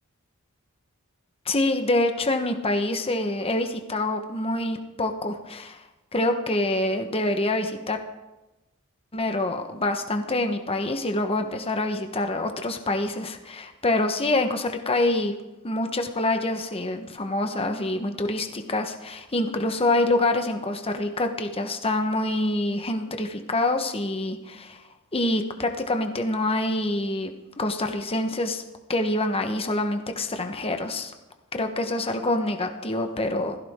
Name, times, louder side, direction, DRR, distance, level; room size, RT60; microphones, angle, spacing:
voice 1, 1.4-5.8 6.1-8.0 9.1-15.4 15.6-24.8 25.1-28.6 28.9-31.1 31.5-33.6, left 2 dB, 25° left, 6 dB, 1.3 m, -26 dB
17.0 x 14.5 x 3.8 m, 1.0 s
head